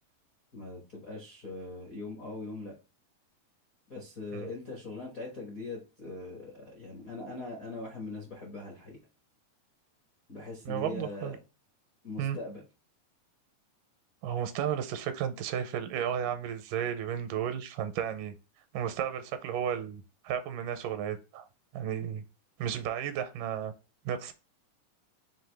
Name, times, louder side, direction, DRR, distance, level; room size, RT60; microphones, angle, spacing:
voice 1, 0.5-2.7 3.9-9.0 10.3-11.4 12.0-12.6, left 3 dB, 65° left, -1 dB, 0.8 m, -41 dB
voice 2, 10.7-11.4 12.2-12.4 14.2-18.3 18.7-21.5 21.7-22.3 22.6-23.7 24.1-24.3, right 9 dB, 85° right, 9 dB, 2.2 m, -33 dB
5.8 x 2.6 x 3.3 m, 0.31 s
omnidirectional pair, 3.7 m